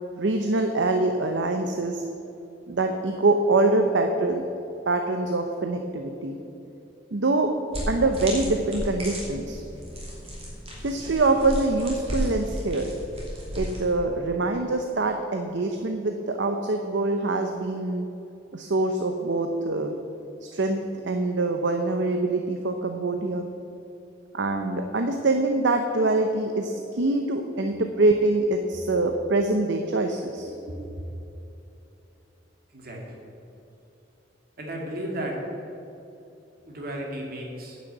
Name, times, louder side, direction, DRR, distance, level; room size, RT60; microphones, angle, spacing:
voice 1, 0.1-2.0 2.7-4.4 4.9-6.4 7.1-7.5 7.9-9.6 10.8-12.9 13.5-18.1 18.5-19.9 20.4-23.5 24.3-30.5, right 2 dB, 70° right, 5 dB, 0.7 m, -24 dB
sound 1, 7.7-13.9, equal, 35° right, 2.8 m, -34 dB
voice 2, 30.7-31.1 32.7-33.2 34.6-35.4 36.6-37.8, right 1 dB, 55° right, 0 dB, 2.1 m, -34 dB
10.0 x 6.3 x 8.1 m, 2.8 s
head